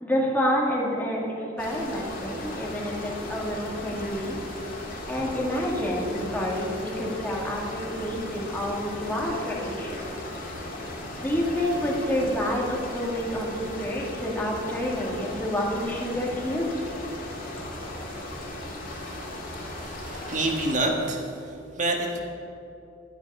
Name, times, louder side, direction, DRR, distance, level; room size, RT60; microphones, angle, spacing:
voice 1, 0.0-4.4 5.1-10.2 11.2-16.7, equal, 10° left, -3 dB, 2.0 m, -28 dB
sound 1, 1.6-20.7, left 1 dB, 50° left, 2.3 m, -37 dB
voice 2, 20.1-22.2, right 2 dB, 40° right, 1 dB, 1.7 m, -27 dB
12.0 x 9.3 x 5.5 m, 2.7 s
head